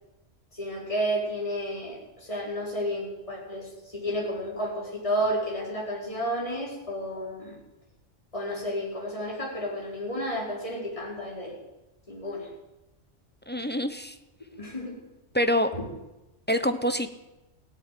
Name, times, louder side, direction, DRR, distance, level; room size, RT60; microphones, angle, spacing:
voice 1, 0.5-7.6 8.3-11.6 12.1-12.5 14.5-15.0 15.7-15.9, equal, 30° left, -3 dB, 4.5 m, -31 dB
voice 2, 13.5-14.2 15.3-15.7 16.5-17.1, equal, 10° left, 9 dB, 0.7 m, -25 dB
16.5 x 8.6 x 9.3 m, 1.0 s
omnidirectional pair, 1.2 m